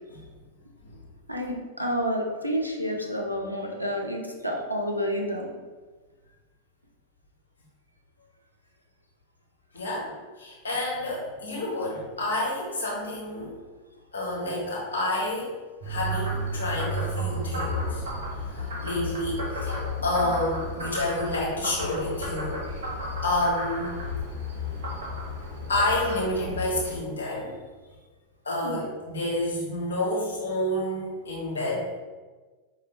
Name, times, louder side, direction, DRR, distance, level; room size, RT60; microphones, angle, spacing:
voice 1, 1.3-5.5 28.6-28.8, equal, 90° right, 1 dB, 0.6 m, -29 dB
voice 2, 9.7-10.1 10.4-13.6 14.1-15.5 15.8-18.0 18.5-22.6 23.2-23.9 25.7-27.5 28.4-31.9, left 1 dB, 70° left, -4 dB, 1.3 m, -29 dB
Frog, 15.8-27.0, left 1 dB, 65° right, 1.1 m, -32 dB
5.1 x 2.5 x 3.0 m, 1.3 s
figure-of-eight pair, 90°, 0 cm